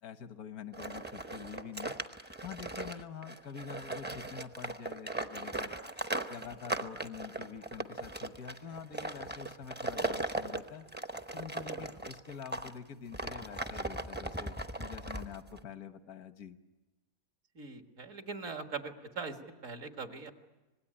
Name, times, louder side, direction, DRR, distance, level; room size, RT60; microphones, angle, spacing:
voice 1, 0.0-1.9 2.4-5.7 6.3-10.8 11.3-16.6, left 7 dB, 85° left, 10 dB, 1.6 m, -46 dB
sound 1, 0.7-12.7 13.1-15.6, right 2 dB, 10° right, 0.7 m, -38 dB
voice 2, 17.6-19.4 19.6-20.3, right 4 dB, 65° right, 5 dB, 2.2 m, -41 dB
26.0 x 19.5 x 10.0 m, 1.1 s
omnidirectional pair, 1.5 m